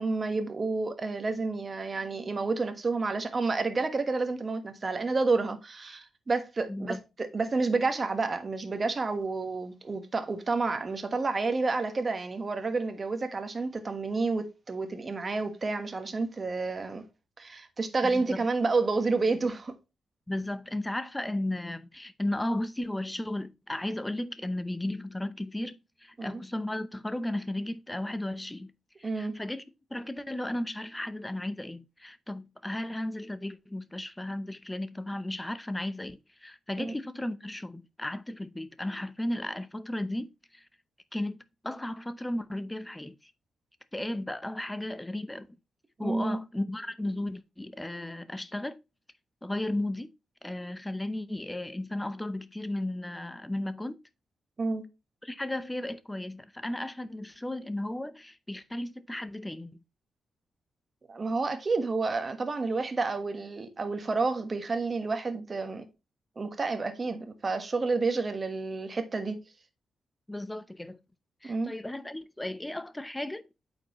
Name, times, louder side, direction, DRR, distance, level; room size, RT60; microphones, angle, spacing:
voice 1, 0.0-17.0 17.4-19.7 26.2-26.4 29.0-29.3 36.8-36.9 46.0-46.4 54.6-54.8 61.1-65.8 66.4-69.4 71.4-71.7, right 3 dB, 30° right, 1.3 m, -30 dB
voice 2, 6.7-7.0 18.0-18.5 20.3-28.7 29.0-29.6 29.9-40.7 41.1-41.4 41.6-43.3 43.9-45.5 46.0-48.8 49.4-50.1 50.4-54.0 55.2-59.8 70.3-71.0 71.4-73.5, left 1 dB, 10° left, 0.7 m, -35 dB
8.5 x 5.4 x 3.0 m
wide cardioid pair, 135°, 0 cm